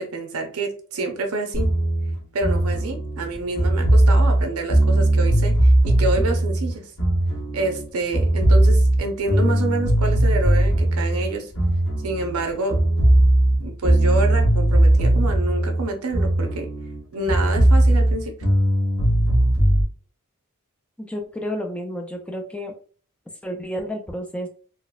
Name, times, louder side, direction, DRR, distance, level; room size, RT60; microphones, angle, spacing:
voice 1, 0.0-1.7 2.3-6.9 7.5-11.5 12.0-12.8 13.6-16.7 17.1-18.3, right 2 dB, 75° right, 4 dB, 0.7 m, -27 dB
sound 1, 1.5-7.8 8.1-12.4 12.7-17.0 17.3-19.8, right 1 dB, 80° left, 1.2 m, -18 dB
voice 2, 21.0-22.7 23.4-24.5, equal, 5° left, 2 dB, 0.4 m, -31 dB
4.0 x 2.1 x 2.4 m, 0.42 s
head